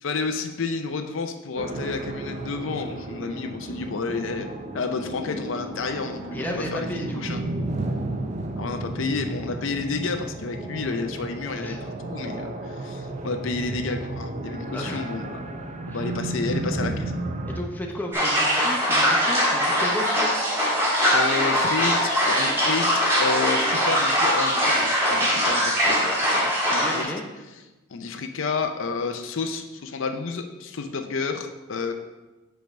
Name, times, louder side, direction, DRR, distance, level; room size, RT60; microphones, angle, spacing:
voice 1, 0.0-4.5 4.7-7.4 8.6-17.2 21.1-22.9 23.2-27.1 27.9-31.9, left 4 dB, 65° left, 6 dB, 0.5 m, -30 dB
sound 1, 1.6-17.6, right 2 dB, 35° right, 0.6 m, -33 dB
voice 2, 6.3-7.3 11.6-11.8 14.7-15.1 15.9-16.1 17.5-20.3 26.8-27.2, left 1 dB, 10° left, 1 dB, 0.7 m, -33 dB
sound 2, 18.1-27.0, equal, 15° right, 1.6 m, -22 dB
5.3 x 4.5 x 6.2 m, 1.1 s
head